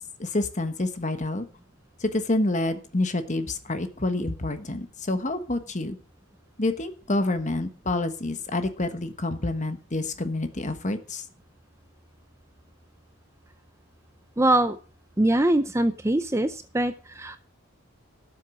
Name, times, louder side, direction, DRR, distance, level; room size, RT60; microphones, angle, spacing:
voice 1, 0.2-1.4 2.0-6.0 6.6-11.2, left 2 dB, 35° left, 9 dB, 1.3 m, -28 dB
voice 2, 14.4-14.8 15.2-17.4, right 1 dB, 10° right, 10 dB, 0.6 m, -23 dB
13.0 x 7.6 x 6.3 m, 0.38 s
head